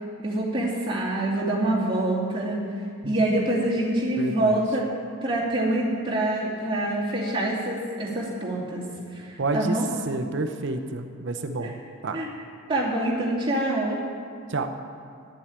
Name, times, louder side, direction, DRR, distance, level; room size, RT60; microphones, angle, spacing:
voice 1, 0.2-2.6 3.0-4.9 5.2-8.8 9.1-9.9 11.6-11.7 12.1-12.3 12.7-14.0, right 1 dB, 25° right, -6 dB, 2.6 m, -25 dB
voice 2, 4.2-4.6 9.4-9.8 10.1-11.7 12.0-12.2 14.5-14.7, right 3 dB, 55° right, 6 dB, 0.7 m, -29 dB
11.5 x 7.7 x 8.7 m, 2.3 s
head